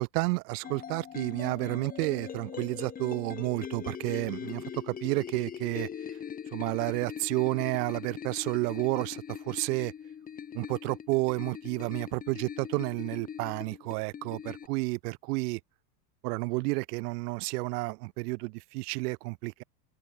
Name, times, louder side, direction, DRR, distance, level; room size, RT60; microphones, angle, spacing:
voice 1, 0.0-5.9 6.5-9.9 10.5-15.6 16.2-19.6, right 26 dB, 65° right, 0.9 m, -31 dB
sound 1, 0.6-14.7, left 8 dB, 15° left, 0.9 m, -41 dB
supercardioid pair, 135°, 50 cm